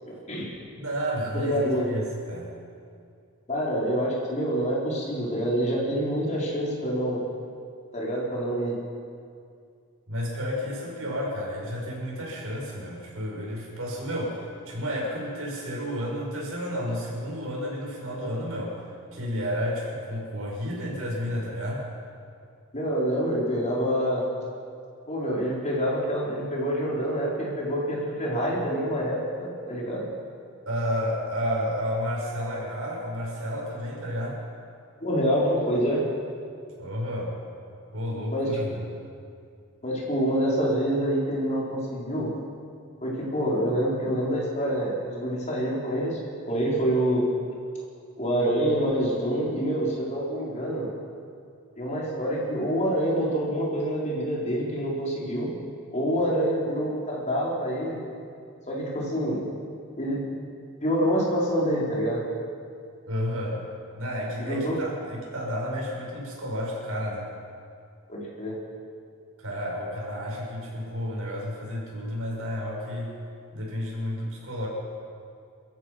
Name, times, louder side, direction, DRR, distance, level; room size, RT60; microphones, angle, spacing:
voice 1, 0.0-0.6 1.3-1.9 3.5-7.2 7.9-8.8 22.7-24.3 25.1-30.1 35.0-36.0 38.3-38.6 39.8-42.3 43.0-46.2 46.5-47.3 48.2-50.9 51.8-55.5 55.9-58.0 58.7-59.4 60.0-60.3 60.8-62.2 64.5-64.7 68.1-68.6, equal, 35° left, -5 dB, 4.4 m, -26 dB
voice 2, 0.8-2.5 10.1-18.8 19.1-21.8 30.7-34.4 36.8-37.4 37.9-38.9 63.1-63.6 63.9-67.3 69.4-73.1 73.5-74.7, equal, 70° right, -3 dB, 7.0 m, -31 dB
30.0 x 14.5 x 6.0 m, 2.3 s
head